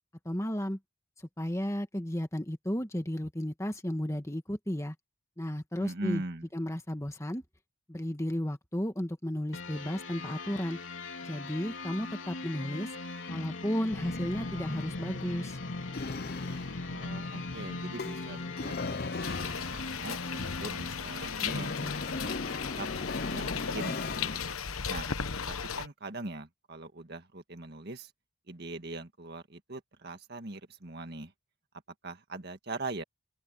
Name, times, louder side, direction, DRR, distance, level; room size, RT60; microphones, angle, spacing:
voice 1, 0.2-0.8 1.4-4.9 5.4-6.2 6.5-7.4 7.9-10.8 11.2-12.9 13.3-15.6, equal, 15° left, 1.6 m, -33 dB
voice 2, 5.8-6.5 16.9-22.3 22.8-22.9 23.3-24.3 24.9-25.1 25.5-28.1 28.5-31.3 32.0-33.0, right 2 dB, 50° right, 1.8 m, -41 dB
sound 1, 9.5-24.5, left 3 dB, 65° left, 3.4 m, -41 dB
sound 2, 13.9-24.4, left 3 dB, 45° left, 0.7 m, -38 dB
sound 3, 19.2-25.9, left 6 dB, 80° left, 1.2 m, -36 dB
open air
head